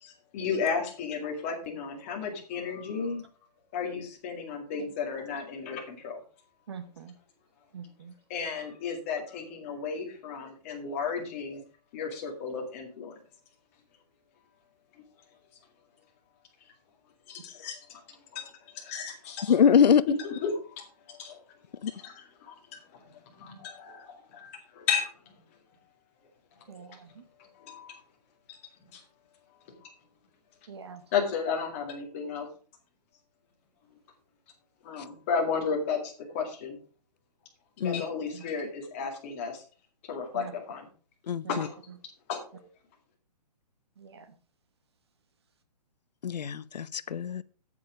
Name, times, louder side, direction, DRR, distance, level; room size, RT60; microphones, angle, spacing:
voice 1, 0.0-3.2 3.7-6.2 8.3-11.6 11.9-13.1 17.3-18.5 18.7-19.6 20.2-21.4 21.7-25.1 26.7-26.9 27.6-28.0 28.9-29.0 31.1-32.5 34.8-36.8 37.8-39.6 40.0-40.9 41.5-41.8 42.3-42.7, left 5 dB, 20° left, 2.0 m, -34 dB
voice 2, 6.7-7.1 7.7-8.1 26.7-27.2 30.7-31.0 38.3-38.4 40.3-40.5 41.4-41.6 44.0-44.2, right 6 dB, 40° right, 1.1 m, -44 dB
voice 3, 19.5-20.0 21.8-21.9 37.8-38.0 41.3-41.7 46.2-47.4, left 7 dB, 85° left, 0.7 m, -23 dB
8.7 x 8.4 x 4.9 m
hypercardioid pair, 175°, 21 cm